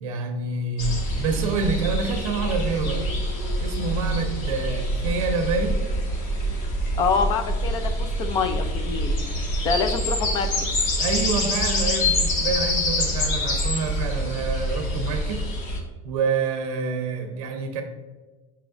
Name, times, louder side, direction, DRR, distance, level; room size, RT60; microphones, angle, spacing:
voice 1, 0.0-3.1 3.6-5.8 11.0-15.4 16.0-17.8, right 4 dB, 85° right, 5 dB, 0.6 m, -27 dB
sound 1, 0.8-15.8, equal, 70° left, 1.3 m, -26 dB
voice 2, 7.0-9.1 9.6-10.5, left 5 dB, 25° left, 7 dB, 0.3 m, -25 dB
6.9 x 3.0 x 2.4 m, 1.2 s
supercardioid pair, 155°, 17 cm